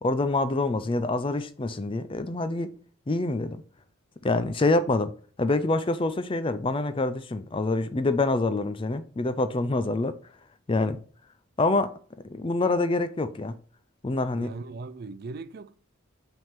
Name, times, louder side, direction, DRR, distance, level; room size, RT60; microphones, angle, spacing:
voice 1, 0.0-2.7 3.1-3.6 4.2-5.1 5.4-10.2 10.7-11.0 11.6-11.9 12.3-13.6 14.0-14.5, left 2 dB, 25° left, 0.4 m, -26 dB
voice 2, 14.4-15.7, right 3 dB, 50° right, 0.4 m, -39 dB
5.7 x 3.6 x 5.7 m
head